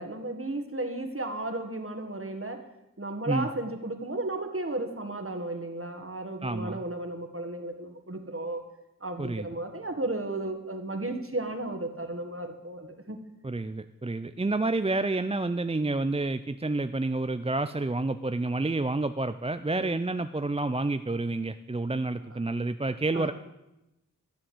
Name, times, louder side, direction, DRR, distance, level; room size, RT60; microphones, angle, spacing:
voice 1, 0.0-2.6 3.0-8.6 9.0-13.2 19.7-19.9 23.1-23.3, right 2 dB, 45° right, 6 dB, 1.8 m, -34 dB
voice 2, 6.4-6.8 9.2-9.5 13.4-23.3, right 2 dB, 20° right, 10 dB, 0.5 m, -29 dB
14.0 x 7.6 x 7.9 m, 0.93 s
wide cardioid pair, 45°, 32 cm